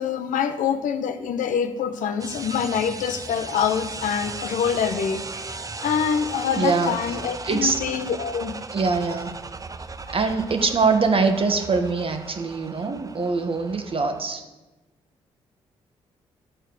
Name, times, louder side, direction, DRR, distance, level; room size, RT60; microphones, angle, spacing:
voice 1, 0.0-5.2 5.8-8.5, left 7 dB, 65° left, 9 dB, 0.7 m, -25 dB
sound 1, 2.2-14.2, right 3 dB, 25° right, 0.6 m, -37 dB
voice 2, 6.6-6.9 7.4-7.8 8.7-9.3 10.1-14.4, right 4 dB, 40° right, 6 dB, 1.2 m, -23 dB
11.0 x 4.5 x 6.7 m, 1.1 s
hypercardioid pair, 40°, 14 cm